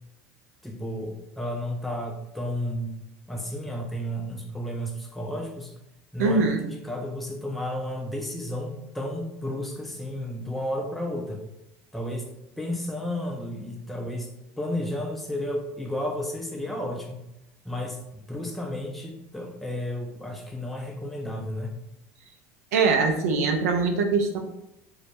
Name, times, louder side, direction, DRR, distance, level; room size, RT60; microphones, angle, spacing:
voice 1, 0.6-3.0 3.3-5.7 6.1-11.4 11.9-12.3 12.6-14.3 14.6-17.2 17.6-21.7, left 1 dB, ahead, 1 dB, 0.4 m, -32 dB
voice 2, 6.2-6.6 22.7-24.4, right 4 dB, 90° right, 5 dB, 0.3 m, -22 dB
2.1 x 2.1 x 2.8 m, 0.86 s
hypercardioid pair, 90°, 8 cm